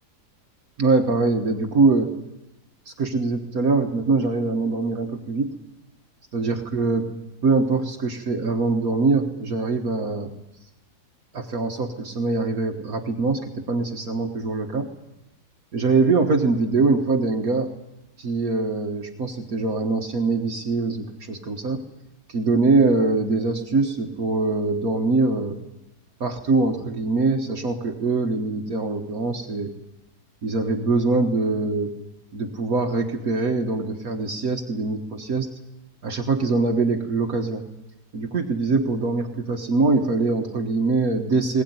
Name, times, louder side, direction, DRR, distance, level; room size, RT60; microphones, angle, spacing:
voice 1, 0.8-2.2 2.9-5.5 6.3-7.0 7.4-10.3 11.3-14.9 15.7-17.7 18.2-21.8 22.3-25.6 26.2-29.7 30.4-31.9 32.3-35.5 36.0-37.6 38.1-41.6, right 3 dB, 60° right, 4 dB, 1.8 m, -23 dB
20.5 x 19.5 x 9.5 m, 0.92 s
omnidirectional pair, 1.8 m